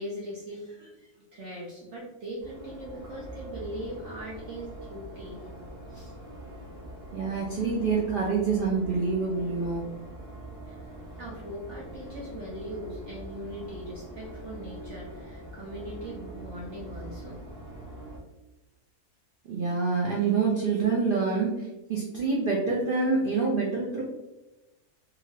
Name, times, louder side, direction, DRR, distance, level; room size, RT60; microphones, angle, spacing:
voice 1, 0.0-5.4 5.9-6.1 10.7-10.8 11.2-17.4, equal, 60° right, -4 dB, 0.8 m, -40 dB
sound 1, 2.4-18.2, right 1 dB, 25° right, 0.9 m, -43 dB
voice 2, 7.1-9.8 19.4-24.0, right 4 dB, 80° right, -3 dB, 0.4 m, -26 dB
2.7 x 2.5 x 3.0 m, 1.0 s
omnidirectional pair, 1.6 m